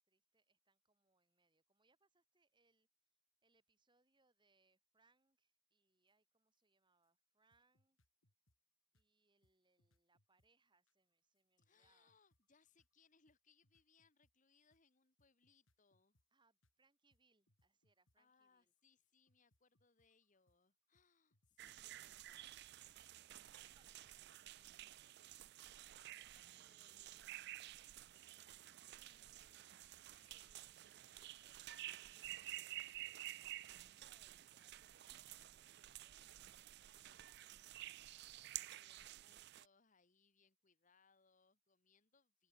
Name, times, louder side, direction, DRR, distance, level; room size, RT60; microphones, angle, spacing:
voice 1, 0.0-2.9 3.4-8.0 8.9-12.2 16.3-18.7 23.5-25.6 33.7-39.2, right 3 dB, 20° right, 3.4 m, -81 dB
sound 1, 6.1-6.2 6.6-6.7 7.0-7.1 7.5-8.6 8.9-9.1 9.4-9.5 9.8-10.5 10.9-13.4 13.6-14.3 14.7-14.8 15.2-16.3 16.6-16.7 17.1-17.2 17.5-18.2 18.6-21.1 21.3-22.8, left 1 dB, 75° left, 6.3 m, -82 dB
voice 2, 11.6-16.2 18.2-22.7 26.0-33.8 38.6-42.5, left 5 dB, 40° left, 1.5 m, -76 dB
sound 2, 21.6-39.7, right 15 dB, 50° right, 0.4 m, -53 dB
open air
head